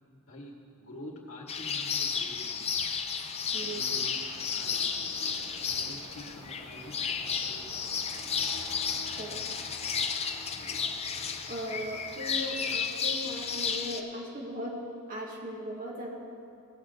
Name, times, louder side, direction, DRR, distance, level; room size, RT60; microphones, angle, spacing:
voice 1, 0.0-2.7 3.6-7.8 8.1-8.2 8.5-8.6 10.5-10.8, left 1 dB, 60° left, -4 dB, 2.0 m, -48 dB
sound 1, 1.5-14.0, left 6 dB, 30° left, 0.6 m, -33 dB
sound 2, 4.1-9.1, right 1 dB, 60° right, 1.8 m, -52 dB
voice 2, 11.5-16.1, equal, 40° right, -3 dB, 2.1 m, -38 dB
18.0 x 7.4 x 4.0 m, 2.6 s
head